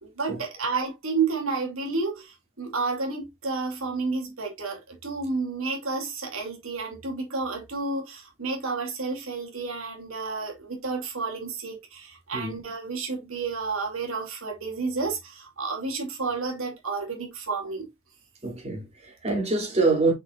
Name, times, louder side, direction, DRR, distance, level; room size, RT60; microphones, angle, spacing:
voice 1, 0.0-17.9, right 4 dB, 80° right, 2.7 m, -31 dB
voice 2, 18.4-20.1, right 3 dB, 30° right, 3.2 m, -25 dB
6.4 x 6.1 x 2.5 m
head